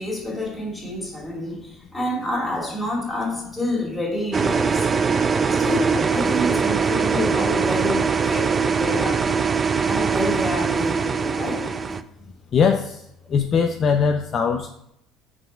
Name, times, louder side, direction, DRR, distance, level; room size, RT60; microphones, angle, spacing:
voice 1, 0.0-5.0 5.5-9.3 9.8-11.7, left 1 dB, 15° left, 2.4 m, -28 dB
sound 1, 4.3-12.0, right 5 dB, 35° right, 0.4 m, -22 dB
voice 2, 12.5-13.0 13.3-14.7, left 6 dB, 45° left, 0.5 m, -20 dB
4.4 x 4.2 x 5.2 m
supercardioid pair, 75°, 0 cm